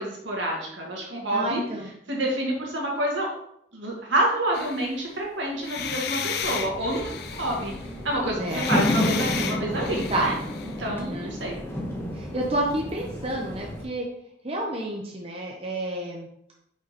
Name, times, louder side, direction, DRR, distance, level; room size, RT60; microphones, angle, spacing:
voice 1, 0.0-1.6 2.1-3.3 3.7-7.7 8.0-10.3 10.8-11.6, right 1 dB, 75° right, -1 dB, 1.8 m, -28 dB
voice 2, 1.3-1.9 8.4-8.7 10.1-10.3 10.8-11.3 12.1-14.1 14.4-16.3, right 1 dB, 30° right, -1 dB, 0.7 m, -29 dB
sound 1, 4.5-5.2 5.6-8.0 8.4-10.8, left 7 dB, 55° left, 0.5 m, -34 dB
sound 2, 6.4-13.8, left 1 dB, 10° left, 0.8 m, -31 dB
5.1 x 4.9 x 4.1 m, 0.76 s
head